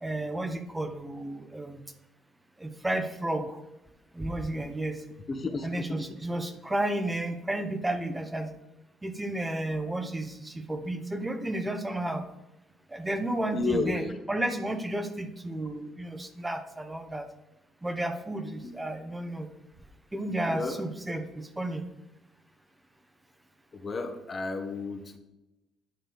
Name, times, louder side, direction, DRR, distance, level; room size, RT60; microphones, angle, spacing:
voice 1, 0.0-1.8 2.6-3.6 4.1-5.0 5.6-8.5 9.0-12.2 12.9-17.2 17.8-19.5 20.1-21.8, right 1 dB, 15° right, 7 dB, 1.0 m, -32 dB
voice 2, 5.3-6.1 13.5-14.2 18.6-18.7 20.5-20.8 23.7-25.2, left 3 dB, 40° left, 7 dB, 0.9 m, -32 dB
9.4 x 3.3 x 6.2 m, 0.95 s
supercardioid pair, 60°, 0 cm